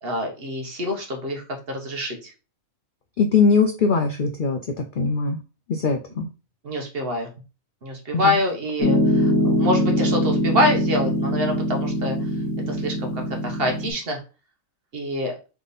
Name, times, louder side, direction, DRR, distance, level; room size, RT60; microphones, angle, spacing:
voice 1, 0.0-2.3 6.6-7.3 7.8-12.3 12.7-13.1 13.4-14.2 14.9-15.3, left 1 dB, 45° right, 2 dB, 1.1 m, -26 dB
voice 2, 3.2-5.4 5.7-6.3, left 5 dB, 70° left, 5 dB, 0.4 m, -21 dB
Piano, 8.8-13.9, equal, 55° left, 1.4 m, -22 dB
3.5 x 3.4 x 4.0 m, 0.32 s
omnidirectional pair, 1.5 m